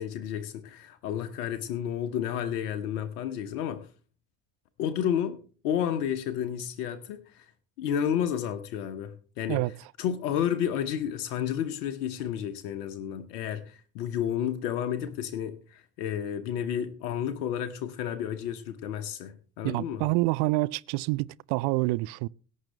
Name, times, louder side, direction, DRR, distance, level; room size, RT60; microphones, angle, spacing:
voice 1, 0.0-3.9 4.8-5.4 5.6-7.5 7.8-9.6 10.0-20.0, left 9 dB, 70° left, 1.1 m, -31 dB
voice 2, 19.6-22.3, right 22 dB, 55° right, 0.5 m, -27 dB
17.5 x 8.5 x 3.2 m
figure-of-eight pair, 45°, 47 cm